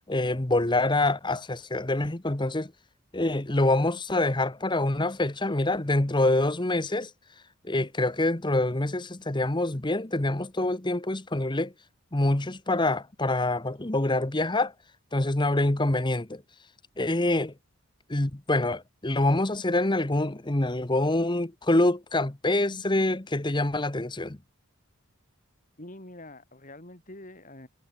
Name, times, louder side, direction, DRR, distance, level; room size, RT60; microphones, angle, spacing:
voice 1, 0.1-2.7 3.1-7.1 7.6-11.7 12.1-14.7 15.1-16.4 17.0-17.5 18.1-24.4, left 2 dB, 20° left, 1.1 m, -26 dB
voice 2, 25.8-27.7, left 1 dB, 35° left, 4.2 m, -45 dB
head